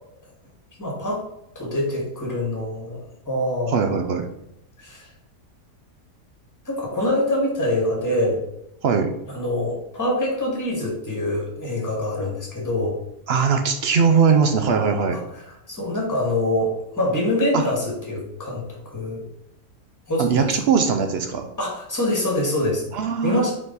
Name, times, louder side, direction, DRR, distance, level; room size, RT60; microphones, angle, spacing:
voice 1, 0.8-1.2 1.6-3.0 3.3-4.0 4.8-5.1 6.7-8.4 9.3-13.0 15.7-19.2 20.1-20.5 21.6-22.8 23.2-23.5, left 1 dB, 10° left, -3 dB, 1.8 m, -24 dB
voice 2, 3.7-4.3 8.8-9.1 13.3-15.2 17.5-17.7 20.2-21.5 22.9-23.4, right 6 dB, 60° right, 6 dB, 0.7 m, -20 dB
5.0 x 4.8 x 4.0 m, 0.81 s
omnidirectional pair, 1.6 m